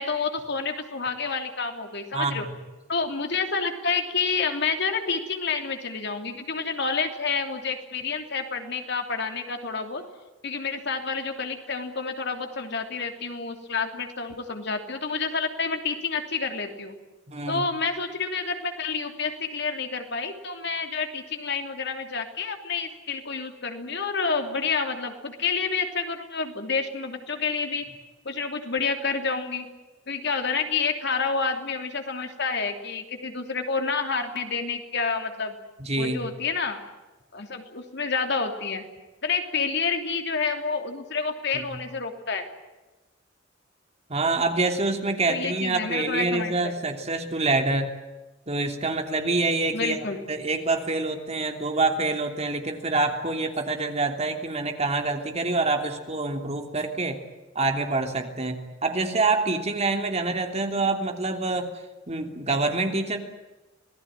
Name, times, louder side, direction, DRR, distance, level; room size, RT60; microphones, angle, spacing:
voice 1, 0.0-2.4 2.9-10.0 10.4-16.9 17.5-27.9 28.2-29.7 30.1-35.6 36.0-36.8 37.3-38.8 39.2-42.5 45.3-46.7 49.7-50.2, left 5 dB, 65° left, 5 dB, 3.1 m, -29 dB
voice 2, 2.1-2.4 17.3-17.6 35.8-36.2 41.5-41.6 44.1-47.9 48.5-57.2 57.5-61.7 62.1-63.2, right 3 dB, 35° right, 4 dB, 3.1 m, -26 dB
26.5 x 19.0 x 9.1 m, 1.1 s
head